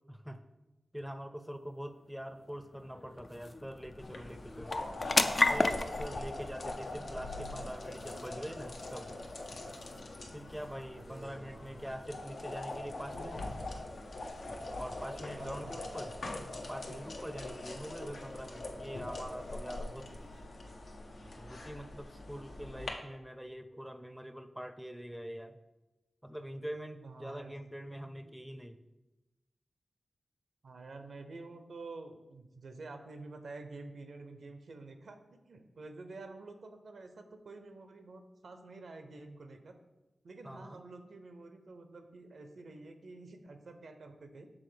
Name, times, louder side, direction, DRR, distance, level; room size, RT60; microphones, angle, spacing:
voice 1, 0.1-0.4 0.9-4.9 5.5-9.2 10.3-13.5 14.8-16.1 16.5-20.1 21.4-25.6 26.2-28.8 40.4-40.8, equal, 5° right, 10 dB, 0.5 m, -44 dB
sound 1, 1.7-16.6, left 3 dB, 50° left, 0.4 m, -38 dB
sound 2, 4.0-22.9, left 2 dB, 75° left, 0.8 m, -42 dB
voice 2, 11.0-11.9 15.4-15.8 27.0-27.6 30.6-39.8 40.2-44.5, right 3 dB, 75° right, 7 dB, 0.7 m, -49 dB
6.2 x 3.7 x 5.0 m, 1.0 s
cardioid pair, 45°, 0 cm